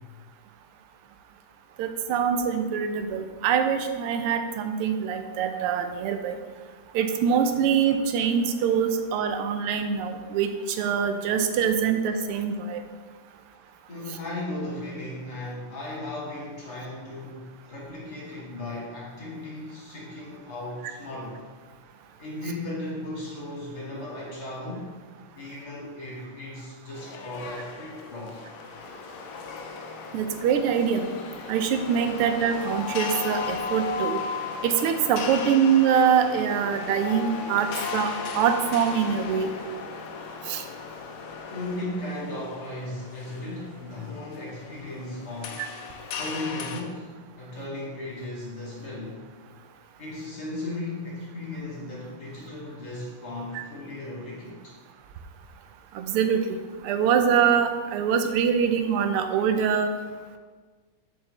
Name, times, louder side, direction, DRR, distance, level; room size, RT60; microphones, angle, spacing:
voice 1, 1.8-6.4 6.9-12.8 30.1-31.1 31.5-34.2 34.6-39.5 40.5-40.6 53.5-53.6 55.9-56.4 56.8-59.9, right 7 dB, 85° right, 7 dB, 1.5 m, -24 dB
voice 2, 13.9-21.4 22.2-24.9 25.3-28.4 41.5-45.6 46.1-49.2 50.0-54.7, left 1 dB, 45° left, -6 dB, 2.4 m, -36 dB
sound 1, 26.9-46.8, left 5 dB, 80° left, 1.5 m, -36 dB
7.2 x 5.5 x 3.2 m, 1.5 s
omnidirectional pair, 2.4 m